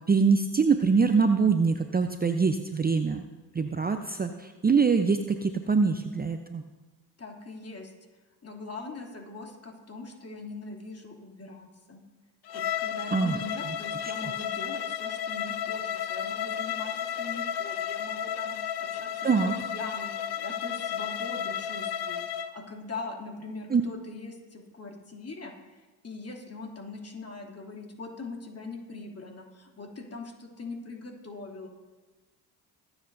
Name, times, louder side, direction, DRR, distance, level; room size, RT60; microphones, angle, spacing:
voice 1, 0.0-3.2 3.5-6.6 13.1-13.4 19.2-19.5 23.7-23.8, right 5 dB, 20° right, 7 dB, 0.7 m, -24 dB
voice 2, 7.2-7.9 8.4-12.0 12.5-31.7, left 3 dB, 30° left, 0 dB, 2.9 m, -42 dB
Bowed string instrument, 12.5-22.5, left 9 dB, 55° left, 0.9 m, -33 dB
24.0 x 8.0 x 2.7 m, 1.2 s
hypercardioid pair, 55°, 46 cm